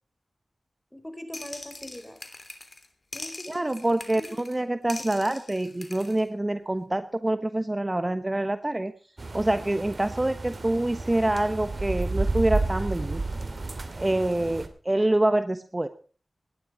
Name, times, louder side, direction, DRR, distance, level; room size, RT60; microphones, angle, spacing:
voice 1, 0.9-2.2 3.1-3.6 3.8-5.2, equal, 10° left, 8 dB, 4.6 m, -43 dB
sound 1, 1.3-2.9 3.1-4.6 4.9-6.2, left 2 dB, 45° left, 3.1 m, -42 dB
voice 2, 3.5-8.9 9.3-13.2 13.9-15.9, right 1 dB, 25° right, 11 dB, 1.1 m, -26 dB
sound 2, 9.2-14.7, right 3 dB, 55° right, 2.5 m, -31 dB
18.5 x 11.5 x 5.0 m, 0.41 s
cardioid pair, 50°, 0 cm